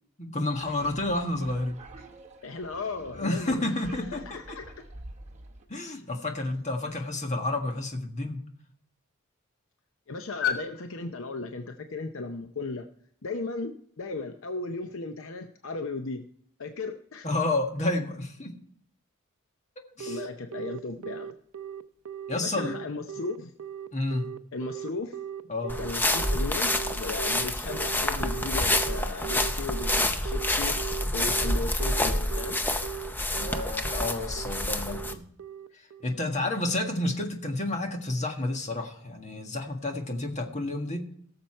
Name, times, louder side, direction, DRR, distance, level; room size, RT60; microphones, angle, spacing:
voice 1, 0.2-1.8 3.2-4.2 5.7-8.4 17.2-18.5 20.0-20.2 22.3-22.8 23.9-24.2 25.5-25.7 33.3-35.2 36.0-41.0, left 2 dB, 30° left, 3 dB, 1.6 m, -30 dB
sound 1, 0.6-5.7, right 2 dB, 30° right, 1.2 m, -47 dB
voice 2, 2.4-4.8 10.1-12.9 13.2-16.2 16.6-17.3 20.0-21.3 22.3-23.5 24.5-25.2 25.8-30.8 31.1-32.6, left 4 dB, 60° left, 7 dB, 0.7 m, -35 dB
Telephone, 20.0-36.2, right 9 dB, 75° right, 0.6 m, -38 dB
sound 2, 25.7-35.1, left 1 dB, 10° left, 0.6 m, -28 dB
17.5 x 6.9 x 4.4 m, 0.65 s
head